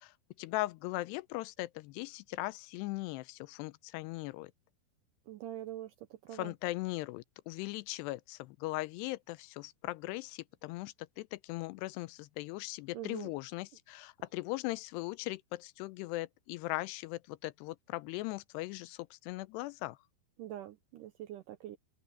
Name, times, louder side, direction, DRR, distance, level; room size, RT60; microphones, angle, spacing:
voice 1, 0.4-1.7 2.0-3.2 3.5-4.5 6.4-10.3 10.6-10.9 11.5-15.4 15.8-19.0 19.3-19.9, left 20 dB, 90° left, 2.8 m, -38 dB
voice 2, 5.3-6.6 12.9-13.3 20.4-21.8, right 13 dB, 80° right, 1.9 m, -44 dB
open air
omnidirectional pair, 4.7 m